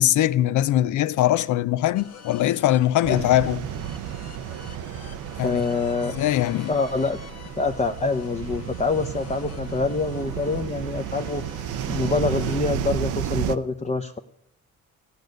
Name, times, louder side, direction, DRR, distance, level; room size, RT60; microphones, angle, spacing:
voice 1, 0.0-3.6 5.4-5.6 6.0-6.7, left 13 dB, 75° left, 0.6 m, -21 dB
sound 1, 1.9-12.6, left 7 dB, 55° left, 1.2 m, -45 dB
sound 2, 3.0-13.6, right 10 dB, 85° right, 0.7 m, -32 dB
voice 2, 5.4-6.2 6.7-7.2 7.6-11.4 11.9-14.2, left 3 dB, 20° left, 0.8 m, -25 dB
16.0 x 9.4 x 6.5 m
cardioid pair, 90°, 30 cm